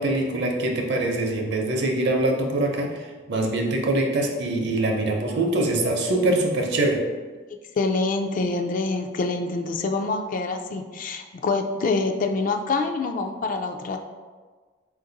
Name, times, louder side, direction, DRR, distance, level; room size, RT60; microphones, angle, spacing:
voice 1, 0.0-7.0, right 2 dB, 60° right, 1 dB, 0.7 m, -24 dB
voice 2, 7.8-14.0, left 3 dB, 45° left, 5 dB, 0.3 m, -26 dB
4.2 x 2.6 x 3.9 m, 1.4 s
head